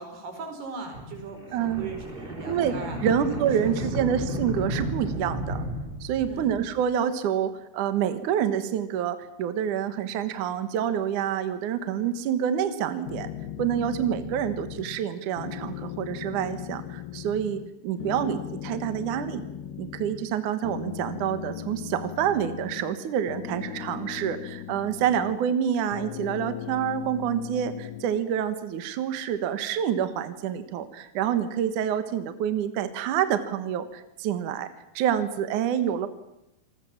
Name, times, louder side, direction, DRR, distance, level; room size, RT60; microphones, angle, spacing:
voice 1, 0.0-3.0 3.4-3.9 6.3-6.5 13.8-14.1 18.0-18.3, right 3 dB, 85° right, 5 dB, 6.9 m, -39 dB
sound 1, 0.9-6.8, equal, 15° right, 4.0 m, -33 dB
voice 2, 1.5-1.9 2.5-2.7 3.0-5.7 6.0-13.3 13.6-19.5 19.8-34.7 34.9-36.1, right 9 dB, 60° right, 10 dB, 2.5 m, -27 dB
sound 2, 13.0-15.1 15.4-17.7 18.0-20.3 20.6-23.0 23.3-25.6 25.9-28.2, left 11 dB, 85° left, 3.2 m, -38 dB
28.5 x 20.5 x 7.3 m, 0.88 s
omnidirectional pair, 4.5 m